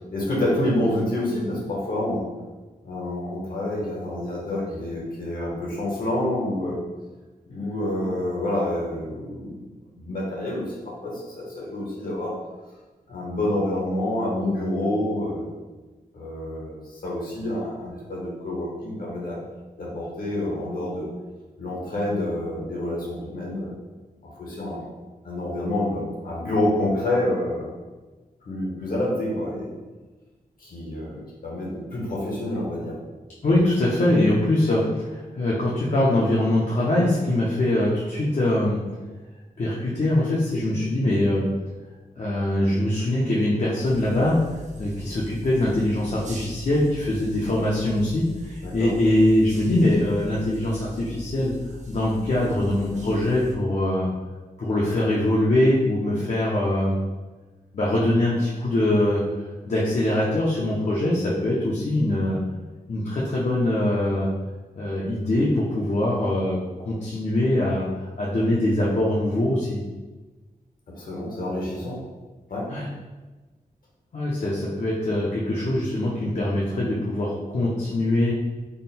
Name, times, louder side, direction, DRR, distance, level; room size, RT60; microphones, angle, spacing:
voice 1, 0.0-2.2 2.8-6.8 7.5-10.7 11.0-12.3 13.1-15.5 16.1-19.4 19.8-21.1 21.6-23.7 24.2-24.8 25.2-27.7 28.4-29.7 30.6-33.0 48.6-48.9 70.9-72.0 72.5-72.6, left 1 dB, 65° left, -4 dB, 1.1 m, -28 dB
voice 2, 33.4-38.8 39.6-41.4 42.2-44.4 44.8-51.5 51.9-54.1 54.6-57.0 57.7-59.2 59.6-62.4 62.9-64.3 64.8-66.6 66.8-69.8 72.7-72.8 74.1-78.3, left 1 dB, 50° left, -6 dB, 0.6 m, -23 dB
sound 1, 43.8-53.5, equal, 50° right, 0.5 m, -41 dB
3.7 x 2.1 x 4.1 m, 1.2 s
wide cardioid pair, 165°, 16 cm